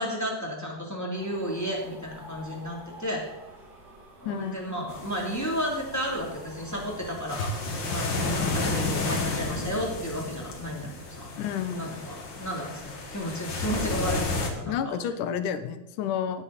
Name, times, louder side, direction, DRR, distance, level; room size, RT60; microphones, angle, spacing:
voice 1, 0.0-3.2 4.2-10.9 11.2-11.3 11.7-14.9, equal, 5° left, -2 dB, 2.7 m, -33 dB
sound 1, 1.1-8.5, right 1 dB, 60° right, 4.3 m, -49 dB
voice 2, 4.3-4.6 11.4-11.9 14.7-16.4, left 8 dB, 85° left, 10 dB, 2.5 m, -30 dB
sound 2, 4.9-14.5, left 2 dB, 40° left, 2.1 m, -32 dB
17.0 x 9.2 x 4.2 m, 1.0 s
omnidirectional pair, 3.6 m